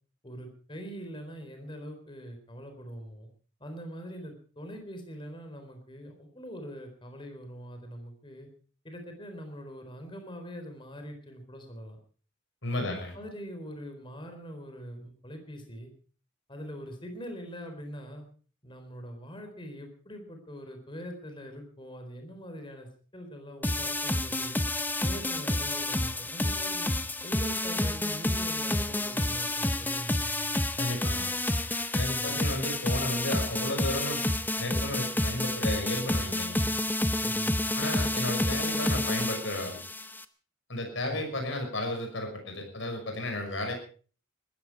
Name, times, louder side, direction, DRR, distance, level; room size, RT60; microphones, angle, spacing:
voice 1, 0.2-3.3 3.6-8.5 8.8-12.0 12.7-15.9 16.5-18.3 18.6-24.6 25.0-26.9 27.2-30.6 32.1-32.4 37.2-37.6 41.0-41.2, equal, 25° left, 5 dB, 4.0 m, -43 dB
voice 2, 12.6-13.1 30.8-31.3 31.9-34.3 34.6-36.8 37.7-39.8 40.7-43.7, left 1 dB, 65° left, 4 dB, 5.9 m, -33 dB
sound 1, 23.6-40.2, left 1 dB, 10° left, 0.7 m, -29 dB
20.5 x 14.0 x 4.8 m, 0.42 s
head